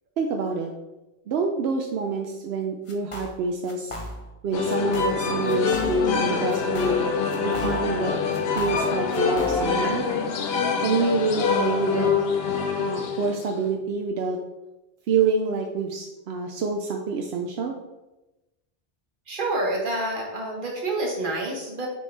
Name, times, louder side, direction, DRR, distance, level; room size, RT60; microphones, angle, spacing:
voice 1, 0.2-0.7 1.3-4.0 4.4-7.1 7.4-8.1 8.6-10.1 10.8-12.1 12.8-14.4 15.1-17.7, right 4 dB, 85° right, 2 dB, 0.9 m, -26 dB
sound 1, 2.9-3.4 3.7-4.4 4.7-5.2 5.5-6.2 6.5-8.0 8.3-9.8, left 1 dB, 35° left, 0.8 m, -37 dB
sound 2, 4.5-13.7, left 5 dB, 75° left, 0.9 m, -25 dB
voice 2, 19.3-21.9, right 2 dB, 55° right, -1 dB, 1.5 m, -28 dB
6.9 x 4.6 x 3.3 m, 1.0 s
omnidirectional pair, 1.0 m